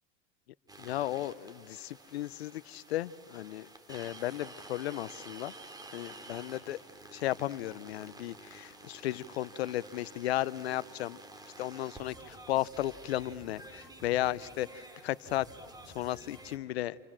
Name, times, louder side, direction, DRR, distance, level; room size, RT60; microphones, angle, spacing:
sound 1, 0.7-16.6, right 2 dB, 10° right, 3.1 m, -51 dB
voice 1, 0.8-5.5 5.9-6.8 7.1-11.2 11.6-15.5 15.9-17.0, left 14 dB, 90° left, 20 dB, 0.6 m, -35 dB
29.5 x 26.5 x 7.4 m, 2.6 s
hypercardioid pair, 95°, 30 cm